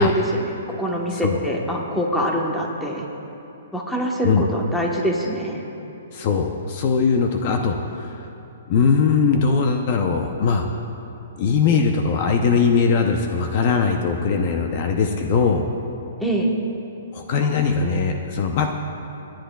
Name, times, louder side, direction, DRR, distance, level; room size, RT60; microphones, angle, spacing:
voice 1, 0.0-3.0 3.7-5.6 16.2-16.5, equal, 5° left, -1 dB, 1.1 m, -24 dB
voice 2, 6.1-8.2 8.7-10.7 11.4-15.7 17.1-18.9, left 5 dB, 40° left, 4 dB, 0.6 m, -20 dB
24.5 x 10.0 x 2.3 m, 2.9 s
hypercardioid pair, 160°, 0 cm